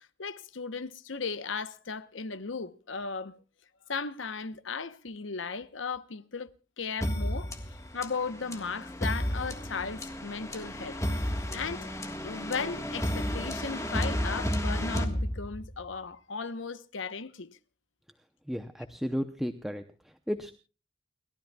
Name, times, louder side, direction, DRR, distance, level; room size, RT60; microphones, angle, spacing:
voice 1, 0.2-3.4 3.9-6.5 6.8-7.5 7.9-11.0 11.5-11.9 12.2-17.6, left 5 dB, 85° left, 1.0 m, -36 dB
sound 1, 7.0-15.8, equal, 15° left, 1.5 m, -32 dB
voice 2, 18.5-19.8 20.3-20.5, equal, ahead, 0.7 m, -33 dB
29.5 x 13.0 x 2.3 m
head